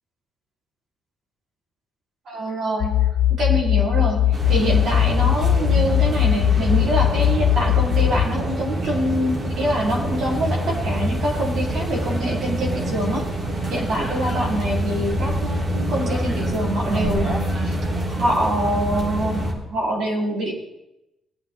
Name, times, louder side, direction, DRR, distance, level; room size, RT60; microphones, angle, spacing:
voice 1, 2.2-13.3 13.7-17.8 18.1-20.5, right 1 dB, 65° right, -3 dB, 4.8 m, -25 dB
sound 1, 2.8-8.3, left 12 dB, 75° left, 0.4 m, -19 dB
sound 2, 4.3-19.5, right 1 dB, 40° right, 3.4 m, -26 dB
20.5 x 9.1 x 4.1 m, 0.90 s
cardioid pair, 90°, 0 cm